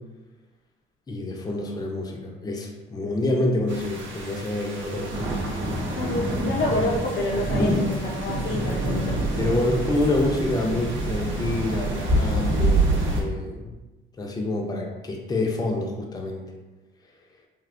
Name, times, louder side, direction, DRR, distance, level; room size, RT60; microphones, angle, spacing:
voice 1, 1.1-5.3 7.5-7.8 9.4-13.8 14.2-16.5, left 2 dB, 20° left, 0 dB, 0.5 m, -27 dB
sound 1, 3.7-13.2, right 2 dB, 75° right, 0.7 m, -26 dB
voice 2, 5.9-9.2, left 2 dB, 75° left, 1 dB, 0.5 m, -27 dB
3.4 x 2.4 x 2.4 m, 1.1 s
cardioid pair, 90°, 20 cm